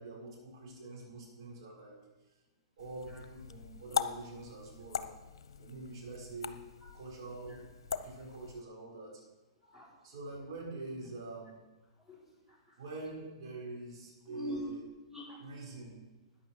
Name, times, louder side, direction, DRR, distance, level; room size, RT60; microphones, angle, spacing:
voice 1, 0.0-2.0 2.8-5.1 5.6-6.6 6.9-7.6 8.0-9.2 10.0-11.5 12.8-14.8 15.4-15.9, right 2 dB, 60° right, -3 dB, 5.2 m, -45 dB
sound 1, 2.8-8.6, left 6 dB, 70° left, 0.8 m, -41 dB
voice 2, 9.6-9.9 12.0-12.8 14.3-14.7 15.1-15.5, equal, 5° right, -5 dB, 3.8 m, -45 dB
14.0 x 9.6 x 4.8 m, 1.1 s
hypercardioid pair, 115°, 3 cm